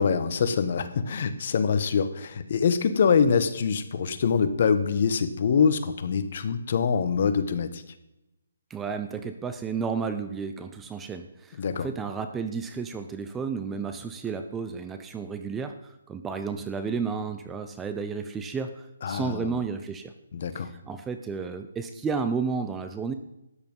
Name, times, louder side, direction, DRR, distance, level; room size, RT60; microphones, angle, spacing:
voice 1, 0.0-7.8 11.6-11.9 19.0-19.5 20.3-20.7, left 6 dB, 45° left, 11 dB, 1.2 m, -24 dB
voice 2, 8.7-20.1 20.5-23.1, right 5 dB, 10° right, 8 dB, 0.6 m, -32 dB
13.0 x 9.6 x 5.5 m, 0.90 s
hypercardioid pair, 165°, 0 cm